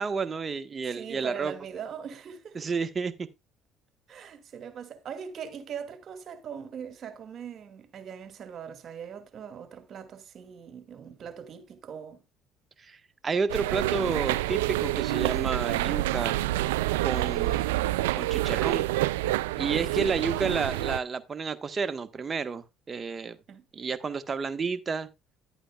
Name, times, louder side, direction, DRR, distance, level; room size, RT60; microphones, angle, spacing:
voice 1, 0.0-1.5 2.5-3.3 12.8-16.4 17.0-17.8 18.2-18.9 19.6-23.4 23.7-25.1, right 5 dB, 35° right, 1.3 m, -31 dB
voice 2, 0.9-2.7 4.1-12.2 23.5-23.6, right 7 dB, 55° right, 2.3 m, -41 dB
sound 1, 13.5-21.0, right 17 dB, 90° right, 0.4 m, -27 dB
11.5 x 8.9 x 2.4 m
hypercardioid pair, 65°, 0 cm